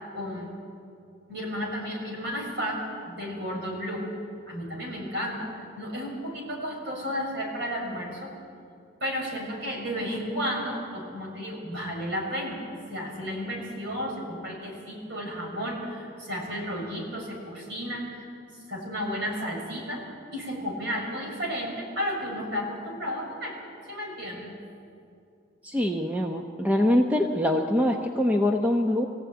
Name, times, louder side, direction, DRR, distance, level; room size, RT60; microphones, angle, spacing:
voice 1, 0.1-0.5 1.3-4.0 4.5-5.5 5.8-8.3 9.0-12.6 12.9-18.3 18.7-23.6 23.8-24.5, equal, 55° right, -1 dB, 6.1 m, -33 dB
voice 2, 25.6-29.1, left 1 dB, 10° right, 3 dB, 0.9 m, -24 dB
24.0 x 16.0 x 9.2 m, 2.5 s
head